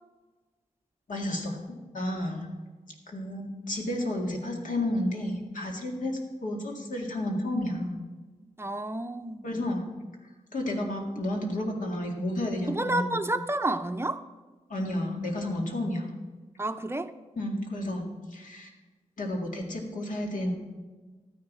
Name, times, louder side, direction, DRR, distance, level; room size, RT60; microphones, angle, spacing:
voice 1, 1.1-1.6 1.9-2.5 3.1-8.0 9.4-9.8 10.5-13.2 14.7-16.1 17.4-18.1 18.3-18.7 19.2-20.5, left 1 dB, 85° left, 1 dB, 2.0 m, -31 dB
voice 2, 8.6-9.5 12.7-14.2 16.6-17.1, right 1 dB, 20° right, 9 dB, 0.5 m, -30 dB
13.0 x 9.7 x 4.2 m, 1.3 s
wide cardioid pair, 110°, 13 cm